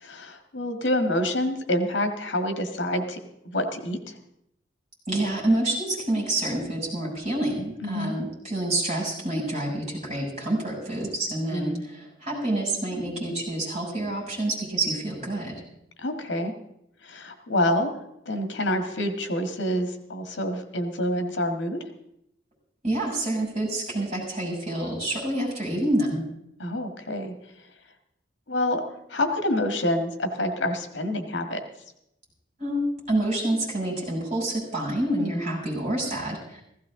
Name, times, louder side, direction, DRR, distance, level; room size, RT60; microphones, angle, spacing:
voice 1, 0.0-3.2 3.4-4.1 7.8-8.1 11.5-11.8 16.0-16.5 17.0-17.9 18.2-21.8 26.6-27.3 28.5-28.8 29.1-31.6 35.2-35.5, left 1 dB, 75° left, 5 dB, 1.7 m, -27 dB
voice 2, 5.1-15.5 22.8-26.2 32.6-36.6, right 1 dB, 40° right, -3 dB, 6.6 m, -28 dB
16.0 x 15.5 x 3.7 m, 0.79 s
head